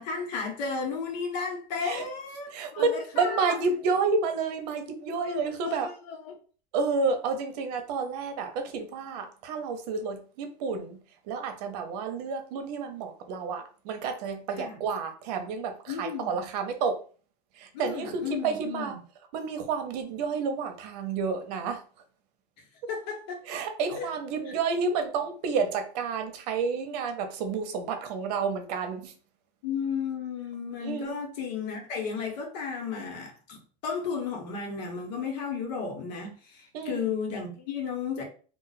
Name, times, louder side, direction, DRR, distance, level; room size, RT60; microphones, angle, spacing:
voice 1, 0.0-3.7 5.2-6.3 14.6-14.8 15.9-16.4 17.7-19.0 22.9-23.4 24.0-24.1 29.6-33.6 33.8-38.2, left 6 dB, 85° left, 1.1 m, -34 dB
voice 2, 2.5-5.9 6.7-11.0 11.3-17.0 17.6-19.0 19.3-21.8 23.4-29.1 30.8-31.2 36.7-37.1, right 5 dB, 70° right, 0.8 m, -30 dB
2.4 x 2.4 x 4.0 m
cardioid pair, 170°, 21 cm